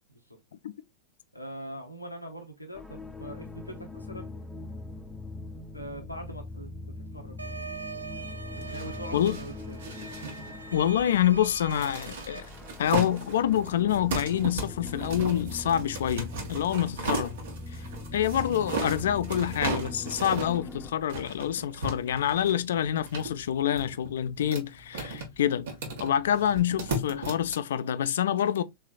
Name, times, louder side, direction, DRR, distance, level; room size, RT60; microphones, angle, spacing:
voice 1, 1.3-4.3 5.7-7.4 8.7-10.0 17.1-17.3 27.1-27.2, right 1 dB, 85° left, 0.7 m, -42 dB
sound 1, 2.7-20.9, left 2 dB, 5° left, 0.5 m, -42 dB
sound 2, 7.4-12.4, right 5 dB, 75° right, 0.4 m, -42 dB
sound 3, 8.5-27.5, right 3 dB, 60° right, 1.1 m, -37 dB
voice 2, 10.7-12.5 12.8-17.3 17.7-17.8 18.1-25.7 26.0-28.6, left 10 dB, 60° left, 0.3 m, -27 dB
3.6 x 3.3 x 2.3 m
figure-of-eight pair, 90°, 0 cm